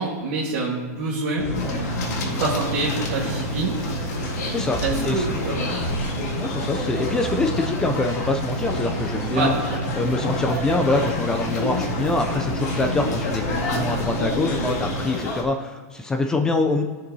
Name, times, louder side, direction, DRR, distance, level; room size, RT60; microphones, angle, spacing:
voice 1, 0.0-1.4 2.3-3.7 4.8-5.9 9.3-9.8, right 3 dB, 45° right, -6 dB, 1.6 m, -26 dB
sound 1, 1.4-15.0, right 1 dB, 45° left, 2.8 m, -30 dB
sound 2, 1.5-15.4, left 2 dB, 90° left, 2.2 m, -30 dB
voice 2, 4.5-5.3 6.4-9.5 10.0-16.8, left 2 dB, 10° left, 5 dB, 0.3 m, -25 dB
14.0 x 6.6 x 2.7 m, 1.5 s
supercardioid pair, 170°, 9 cm